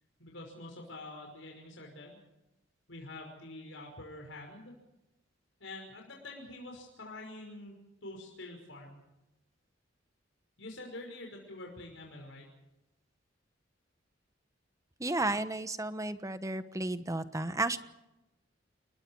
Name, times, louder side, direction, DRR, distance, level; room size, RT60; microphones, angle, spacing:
voice 1, 0.2-2.2 2.9-4.7 5.6-7.8 8.0-9.0 10.6-12.5, left 2 dB, 75° left, 0 dB, 5.6 m, -46 dB
voice 2, 15.0-17.8, right 2 dB, 15° right, 11 dB, 1.2 m, -33 dB
29.5 x 21.5 x 4.7 m, 0.96 s
head